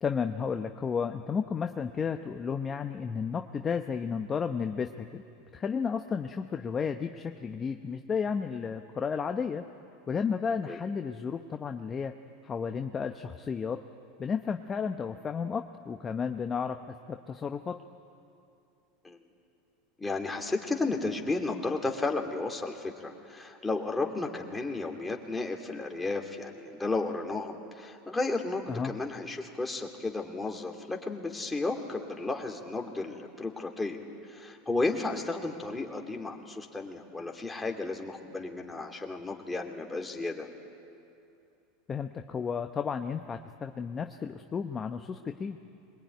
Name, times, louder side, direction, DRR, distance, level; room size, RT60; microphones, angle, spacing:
voice 1, 0.0-5.2 5.5-9.6 10.1-12.1 12.4-13.8 14.2-16.8 17.1-17.7 28.7-28.9 41.9-45.7, left 6 dB, 25° left, 6 dB, 0.9 m, -32 dB
voice 2, 20.0-40.5, left 3 dB, 10° left, 1 dB, 2.7 m, -33 dB
22.5 x 20.5 x 9.4 m, 2.6 s
hypercardioid pair, 105°, 0 cm